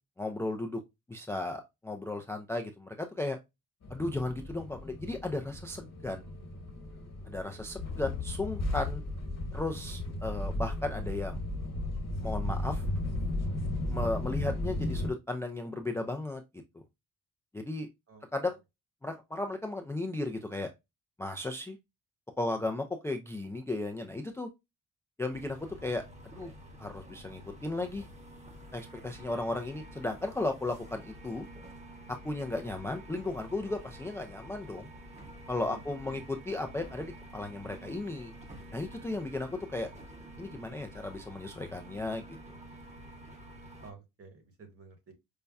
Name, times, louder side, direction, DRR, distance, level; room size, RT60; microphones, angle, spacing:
voice 1, 0.2-0.8 1.1-3.4 3.9-6.2 7.3-9.0 9.5-11.4 12.2-12.8 13.9-16.4 16.7-16.8 17.5-17.9 18.3-18.6 19.0-20.7 21.2-21.8 22.4-24.5 25.2-26.5 26.8-28.1 28.7-31.4 32.1-34.9 35.5-38.3 38.7-39.9 40.4-42.4, left 2 dB, 10° left, 0.3 m, -35 dB
sound 1, 3.8-15.1, left 1 dB, 50° left, 1.2 m, -35 dB
voice 2, 18.1-18.5 35.6-36.2 43.8-45.1, right 4 dB, 40° right, 1.3 m, -52 dB
sound 2, 25.3-43.9, right 1 dB, 20° right, 0.9 m, -49 dB
5.3 x 2.2 x 2.2 m
cardioid pair, 125°, 35 cm